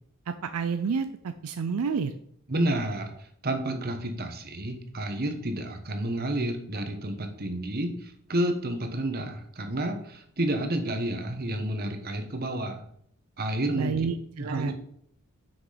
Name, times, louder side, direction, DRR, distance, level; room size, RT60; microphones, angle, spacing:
voice 1, 0.3-2.1 13.7-14.7, right 5 dB, 75° right, 9 dB, 0.4 m, -30 dB
voice 2, 2.5-3.1 3.4-12.8 13.4-14.0 14.4-14.7, right 1 dB, 45° right, 6 dB, 1.1 m, -30 dB
6.2 x 6.0 x 5.0 m, 0.67 s
head